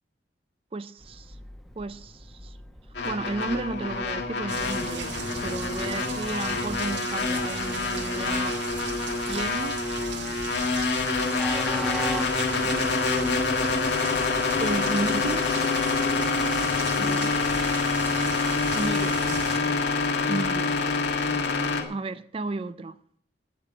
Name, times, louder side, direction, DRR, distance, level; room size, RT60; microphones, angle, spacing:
voice 1, 0.7-1.4 1.8-2.5 3.0-8.6 9.3-9.8 14.6-15.5 17.0-17.2 18.7-19.2 20.3-20.8 21.4-23.0, right 3 dB, 30° right, 0.4 m, -33 dB
Train, 1.0-19.5, equal, ahead, 1.0 m, -43 dB
sound 1, 2.9-21.8, left 4 dB, 70° left, 1.7 m, -26 dB
sound 2, 4.5-19.6, right 5 dB, 80° right, 1.9 m, -38 dB
voice 2, 11.6-13.8 16.8-17.3, left 1 dB, 90° left, 2.6 m, -39 dB
9.3 x 8.2 x 8.6 m
head